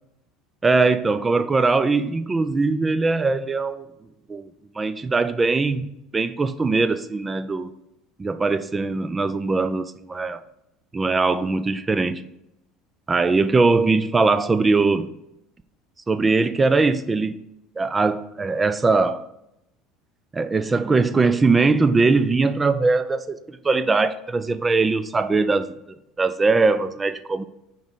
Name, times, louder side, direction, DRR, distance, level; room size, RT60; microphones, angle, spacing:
voice 1, 0.6-3.9 4.3-4.5 4.8-7.7 8.2-10.4 10.9-12.3 13.1-15.1 16.1-17.4 17.8-19.2 20.3-27.4, right 3 dB, 15° right, 0.3 m, -21 dB
5.6 x 4.5 x 6.0 m
cardioid pair, 150°, 0 cm